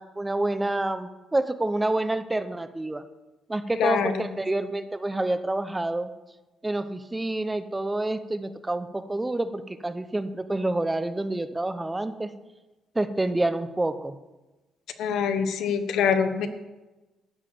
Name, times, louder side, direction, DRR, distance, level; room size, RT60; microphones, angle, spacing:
voice 1, 0.0-3.0 3.5-6.1 6.6-12.3 12.9-14.2, right 2 dB, 15° right, 11 dB, 0.7 m, -28 dB
voice 2, 3.8-4.1 15.0-16.5, left 7 dB, 80° left, 9 dB, 1.0 m, -24 dB
12.5 x 4.8 x 8.6 m, 1.1 s
cardioid pair, 90°, 0 cm